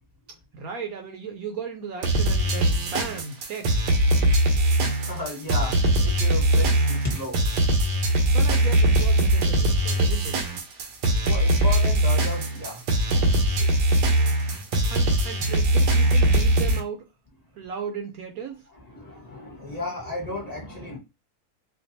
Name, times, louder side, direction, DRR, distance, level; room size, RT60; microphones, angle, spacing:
voice 1, 0.5-4.0 8.0-10.4 14.9-17.1 17.5-18.6, right 6 dB, 70° right, 1.0 m, -36 dB
sound 1, 2.0-16.8, right 1 dB, 85° right, 1.3 m, -21 dB
voice 2, 5.0-5.8 6.0-7.4 11.2-12.8 13.1-13.7 18.8-21.0, left 1 dB, 25° left, 1.3 m, -34 dB
4.4 x 2.4 x 2.7 m
omnidirectional pair, 1.7 m